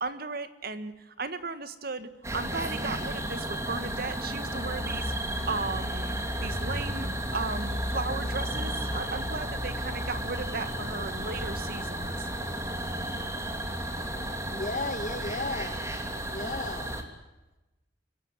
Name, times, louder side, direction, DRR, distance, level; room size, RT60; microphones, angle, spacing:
voice 1, 0.0-12.3, right 3 dB, 55° right, 12 dB, 1.7 m, -36 dB
sound 1, 2.2-17.0, right 1 dB, 15° right, 2.9 m, -33 dB
voice 2, 14.5-15.8 16.3-16.9, left 2 dB, 40° left, 12 dB, 1.7 m, -34 dB
27.0 x 15.5 x 9.1 m, 1.0 s
head